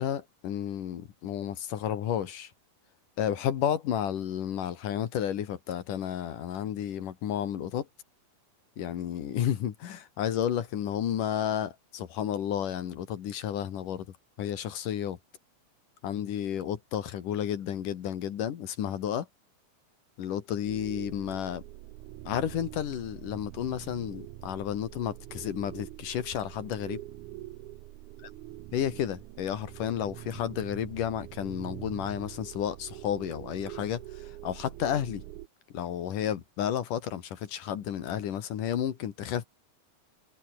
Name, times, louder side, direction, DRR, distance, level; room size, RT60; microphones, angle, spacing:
voice 1, 0.0-2.5 3.2-7.9 8.8-14.1 14.4-15.2 16.0-19.3 20.2-21.6 22.2-27.0 28.7-35.2 35.7-39.4, left 10 dB, 70° left, 3.3 m, -32 dB
sound 1, 20.7-35.5, right 15 dB, 70° right, 2.2 m, -44 dB
omnidirectional pair, 4.0 m